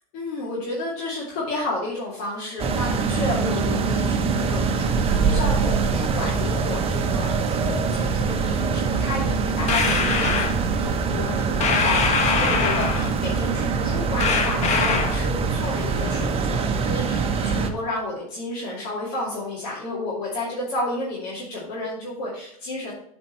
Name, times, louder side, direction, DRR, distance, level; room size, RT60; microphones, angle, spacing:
voice 1, 0.1-22.9, left 2 dB, 60° left, -5 dB, 2.4 m, -31 dB
sound 1, 2.6-17.7, right 5 dB, 30° right, 0.9 m, -24 dB
sound 2, 9.7-10.6 11.6-13.2 14.2-15.3, left 5 dB, 40° left, 1.1 m, -23 dB
7.5 x 4.4 x 4.4 m, 0.68 s
hypercardioid pair, 105°, 19 cm